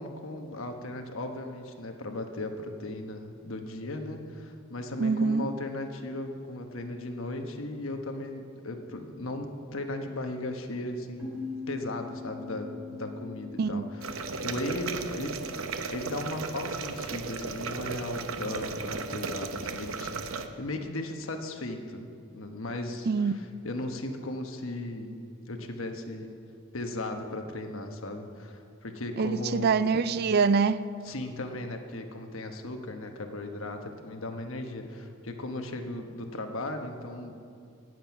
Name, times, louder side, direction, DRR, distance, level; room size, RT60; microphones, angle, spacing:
voice 1, 0.0-15.3 15.9-26.4 26.7-29.7 31.0-37.3, left 1 dB, 75° left, 5 dB, 1.2 m, -37 dB
voice 2, 5.0-5.5 13.6-13.8 23.1-23.3 29.2-30.9, right 5 dB, 50° right, 15 dB, 0.4 m, -25 dB
sound 1, 11.2-16.5, left 4 dB, 10° right, 3.0 m, -43 dB
sound 2, 14.0-20.5, right 4 dB, 75° right, 0.7 m, -35 dB
18.0 x 7.7 x 5.9 m, 2.4 s
head